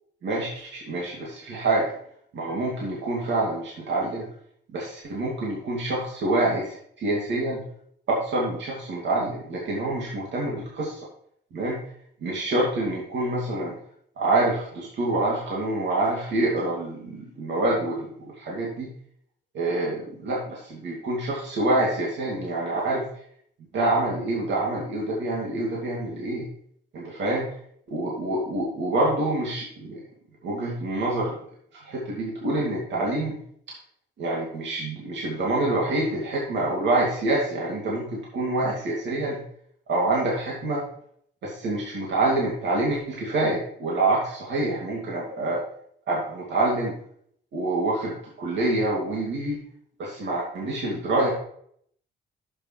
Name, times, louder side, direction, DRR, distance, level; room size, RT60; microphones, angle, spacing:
voice 1, 0.2-1.9 2.3-4.3 4.7-7.6 8.1-10.9 11.5-11.8 12.2-13.7 14.2-18.9 19.5-23.0 23.7-26.5 26.9-27.5 27.9-30.0 30.4-31.3 31.8-33.3 34.2-39.4 39.9-40.8 41.4-45.6 46.1-46.9 47.5-49.6 50.0-51.3, right 2 dB, 65° right, -4 dB, 2.6 m, -26 dB
10.5 x 6.8 x 3.3 m, 0.66 s
cardioid pair, 90°, 20 cm